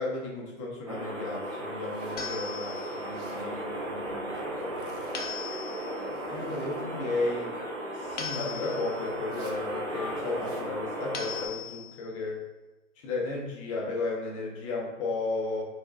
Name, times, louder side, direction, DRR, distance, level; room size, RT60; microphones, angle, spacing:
voice 1, 0.0-4.9 6.3-7.6 7.9-12.4 13.0-15.6, left 3 dB, 25° left, -3 dB, 0.7 m, -34 dB
sound 1, 0.9-11.5, right 1 dB, 25° right, 0.4 m, -35 dB
Zipper (clothing), 1.8-2.3 3.0-3.5 4.5-5.3 5.9-6.9 8.0-8.5 9.2-9.7 10.2-10.7, right 1 dB, 70° right, 0.9 m, -53 dB
sound 2, 2.2-3.1 5.1-6.0 8.2-9.1 11.1-12.1, left 6 dB, 60° left, 0.7 m, -39 dB
4.3 x 2.5 x 2.3 m, 1.1 s
figure-of-eight pair, 120°, 39 cm